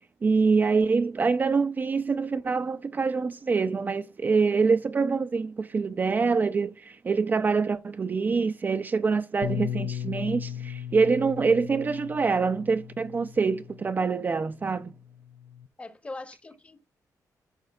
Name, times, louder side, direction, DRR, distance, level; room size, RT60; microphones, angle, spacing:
voice 1, 0.2-14.9, right 4 dB, 25° right, 0.4 m, -25 dB
Bass guitar, 9.4-13.9 14.7-15.7, left 9 dB, 70° left, 0.5 m, -36 dB
voice 2, 15.8-16.9, left 2 dB, 20° left, 0.8 m, -41 dB
13.0 x 6.6 x 2.3 m
wide cardioid pair, 180°, 7 cm